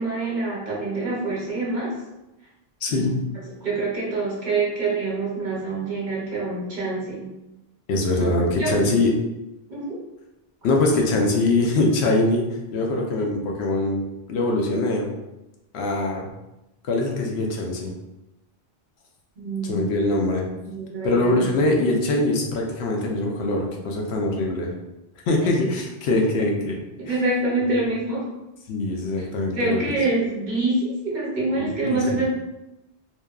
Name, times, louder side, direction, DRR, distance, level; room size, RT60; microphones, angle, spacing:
voice 1, 0.0-1.9 2.9-3.1 3.6-7.3 8.6-8.8 9.7-9.9 19.4-19.9 20.7-21.4 26.1-26.4 27.0-28.2 29.5-32.3, right 2 dB, 50° right, -5 dB, 0.8 m, -26 dB
voice 2, 2.8-3.1 7.9-9.1 10.6-12.5 12.7-14.0 14.3-15.1 15.7-16.3 16.8-17.9 19.6-20.5 21.0-24.7 25.3-26.8 27.1-27.2 28.7-30.0 31.6-32.3, left 2 dB, 80° left, 1 dB, 0.8 m, -23 dB
2.8 x 2.2 x 2.3 m, 0.96 s
omnidirectional pair, 1.1 m